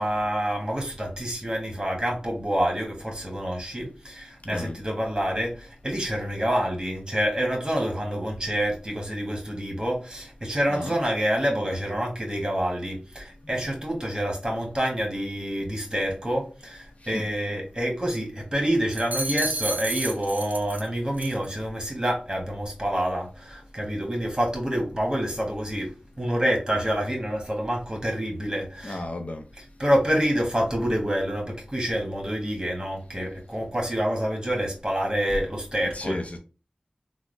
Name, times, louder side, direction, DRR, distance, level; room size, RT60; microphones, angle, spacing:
voice 1, 0.0-29.0 29.5-36.2, equal, 25° right, 1.5 m, -27 dB
sound 1, 18.9-20.9 21.2-21.5, right 2 dB, 85° right, 0.4 m, -31 dB
voice 2, 28.8-29.4 35.9-36.4, left 1 dB, 50° left, 0.5 m, -33 dB
3.5 x 2.1 x 3.2 m
wide cardioid pair, 50°, 3 cm